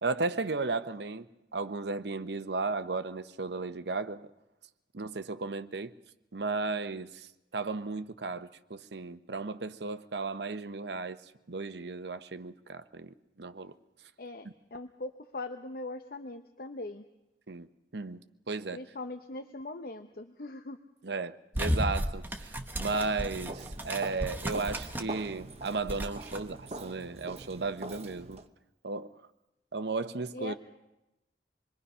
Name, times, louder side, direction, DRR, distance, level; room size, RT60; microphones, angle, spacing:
voice 1, 0.0-1.3 1.5-4.3 4.9-5.9 6.3-7.3 7.5-11.2 11.5-13.7 17.5-17.7 17.9-18.8 21.0-28.4 28.8-29.1 29.7-30.5, right 3 dB, 70° right, 0.9 m, -35 dB
voice 2, 14.2-17.1 18.7-20.8 30.3-30.5, left 2 dB, 55° left, 0.8 m, -41 dB
sound 1, 21.5-25.2 25.5-26.4, equal, 10° right, 1.3 m, -34 dB
Walk footsteps, 22.9-28.5, right 2 dB, 35° right, 1.0 m, -44 dB
27.0 x 21.5 x 5.6 m
head